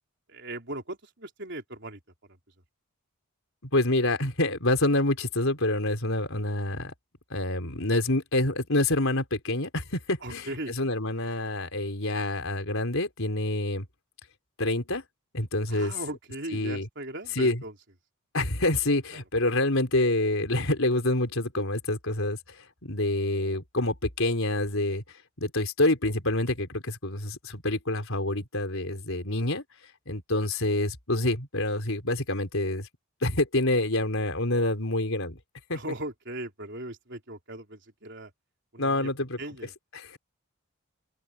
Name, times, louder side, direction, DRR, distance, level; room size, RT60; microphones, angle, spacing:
voice 1, 0.3-2.0 2.3-2.4 10.2-10.7 15.7-17.7 19.1-19.2 35.7-38.3 38.7-39.1 39.4-39.7, right 1 dB, 50° right, 4.1 m, -38 dB
voice 2, 3.7-6.9 7.3-13.8 14.6-15.0 15.3-15.9 16.5-16.9 17.4-17.6 18.3-22.4 22.8-25.0 25.4-29.6 30.1-32.9 33.2-35.4 35.7-35.8 38.8-39.4 39.9-40.2, left 2 dB, 65° left, 4.2 m, -27 dB
open air
head